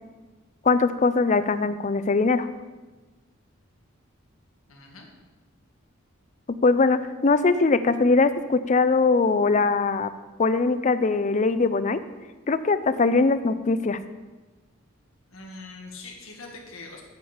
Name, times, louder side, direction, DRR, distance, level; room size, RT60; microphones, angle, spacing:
voice 1, 0.6-2.5 6.6-10.1 10.4-12.0 12.5-14.0, left 3 dB, 35° left, 12 dB, 0.4 m, -21 dB
voice 2, 4.7-5.1 15.3-17.0, left 3 dB, 85° left, 1 dB, 1.8 m, -42 dB
8.8 x 5.1 x 7.1 m, 1.2 s
head